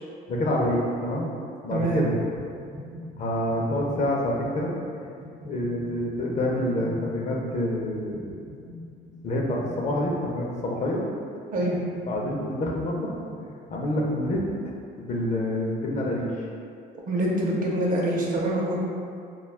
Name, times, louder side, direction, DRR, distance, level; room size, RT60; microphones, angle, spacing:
voice 1, 0.3-1.3 1.6-2.2 3.2-4.7 5.4-8.3 9.2-11.0 12.1-13.2 13.7-16.3, left 1 dB, 45° left, -2 dB, 0.5 m, -27 dB
voice 2, 1.7-2.0 11.5-11.8 17.1-18.8, right 1 dB, 55° right, -3 dB, 0.6 m, -25 dB
sound 1, 2.4-14.6, left 1 dB, 80° right, 0.8 m, -44 dB
2.4 x 2.3 x 3.4 m, 2.4 s
cardioid pair, 110°, 17 cm